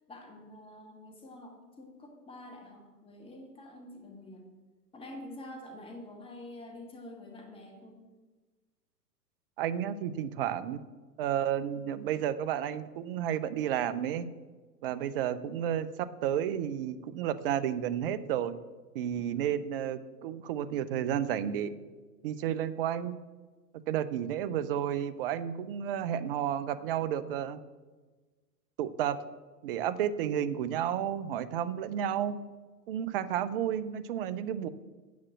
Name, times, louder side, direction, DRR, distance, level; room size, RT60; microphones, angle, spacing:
voice 1, 0.1-4.4 4.9-8.0 19.1-19.4, left 1 dB, 10° left, 2 dB, 1.6 m, -47 dB
voice 2, 9.6-10.8 11.2-14.3 14.8-18.6 18.9-21.8 22.2-23.2 23.7-27.6 28.8-29.2 29.6-32.4 32.9-34.7, right 10 dB, 35° right, 13 dB, 0.6 m, -32 dB
9.2 x 6.2 x 7.4 m, 1.3 s
figure-of-eight pair, 110°, 49 cm